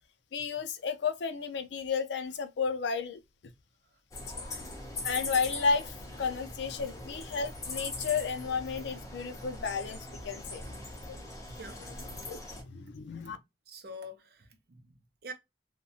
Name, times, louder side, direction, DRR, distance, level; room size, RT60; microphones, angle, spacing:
voice 1, 0.3-3.2 4.3-4.5 5.0-10.7 11.1-11.2 12.1-13.4, left 5 dB, 70° left, 0.4 m, -33 dB
sound 1, 4.1-12.6, left 2 dB, 20° left, 0.6 m, -41 dB
voice 2, 11.5-11.8 12.2-12.3 13.7-15.3, equal, 55° right, 0.6 m, -46 dB
2.7 x 2.1 x 2.7 m
head